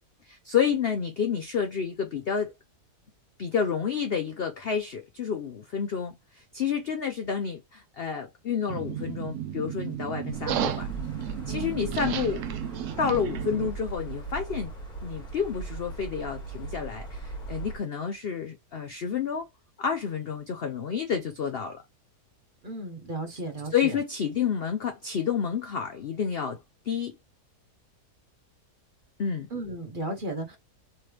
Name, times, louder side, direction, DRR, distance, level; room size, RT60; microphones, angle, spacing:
voice 1, 0.3-2.5 3.4-10.9 11.5-12.6 13.0-14.7 15.0-19.5 19.8-21.8 23.3-23.4 23.7-27.1 29.2-29.5, left 7 dB, 70° left, 0.5 m, -30 dB
sound 1, 8.7-13.7, right 10 dB, 70° right, 0.7 m, -33 dB
sound 2, 10.3-17.8, right 4 dB, 30° left, 1.7 m, -38 dB
voice 2, 11.5-11.8 22.6-24.0 29.5-30.6, right 2 dB, 40° right, 0.9 m, -35 dB
3.3 x 3.2 x 3.0 m
omnidirectional pair, 1.7 m